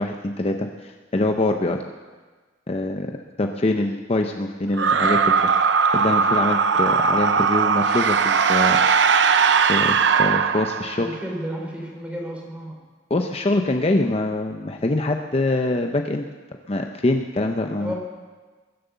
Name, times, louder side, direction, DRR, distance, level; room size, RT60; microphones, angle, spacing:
voice 1, 0.0-1.8 2.7-3.1 3.4-8.8 9.7-11.1 13.1-16.3 16.7-17.9, left 2 dB, 35° left, 4 dB, 0.6 m, -24 dB
sound 1, 4.7-11.2, right 5 dB, 75° right, 0.7 m, -19 dB
voice 2, 11.0-12.8 17.8-17.9, equal, 5° right, -1 dB, 3.4 m, -32 dB
22.5 x 7.7 x 6.9 m, 1.4 s
head